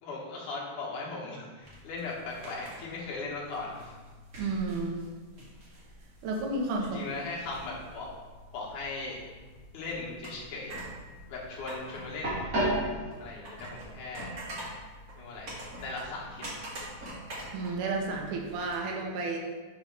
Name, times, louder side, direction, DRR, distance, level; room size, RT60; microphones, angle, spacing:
voice 1, 0.0-3.9 6.8-8.1 8.5-9.2 9.7-10.8 11.3-12.4 13.2-14.7 15.2-16.5 16.8-16.9, left 3 dB, 80° left, -4 dB, 2.8 m, -38 dB
sound 1, 1.6-18.8, right 1 dB, 45° right, 1.2 m, -40 dB
voice 2, 4.4-5.0 6.2-7.0 17.5-19.4, right 3 dB, 85° right, 0 dB, 2.3 m, -32 dB
7.0 x 3.1 x 5.3 m, 1.3 s
omnidirectional pair, 3.5 m